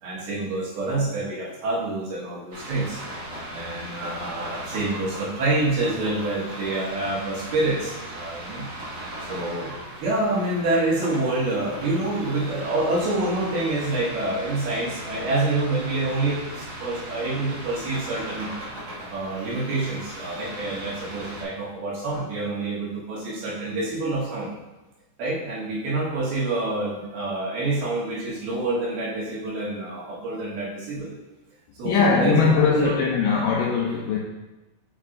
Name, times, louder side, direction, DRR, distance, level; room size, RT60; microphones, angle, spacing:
voice 1, 0.0-3.0 3.5-8.7 9.3-9.7 10.0-18.5 19.1-24.5 25.2-31.2 31.8-33.0, right 2 dB, 75° right, -6 dB, 3.5 m, -27 dB
sound 1, 2.5-21.4, right 1 dB, 50° right, 1.4 m, -38 dB
voice 2, 31.9-34.2, left 5 dB, 85° left, -1 dB, 1.9 m, -21 dB
7.5 x 5.4 x 2.6 m, 1.0 s
omnidirectional pair, 4.5 m